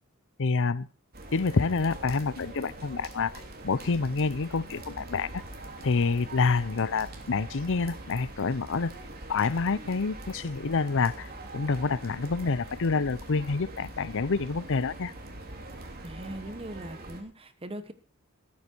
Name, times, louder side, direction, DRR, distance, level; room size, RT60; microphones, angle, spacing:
voice 1, 0.4-0.9 1.3-3.3 3.6-5.3 5.8-8.9 9.3-15.1, left 4 dB, 60° left, 0.7 m, -27 dB
sound 1, 1.1-17.2, right 2 dB, 45° right, 3.1 m, -43 dB
voice 2, 16.0-17.9, right 1 dB, 25° right, 1.2 m, -40 dB
14.0 x 13.0 x 4.6 m
head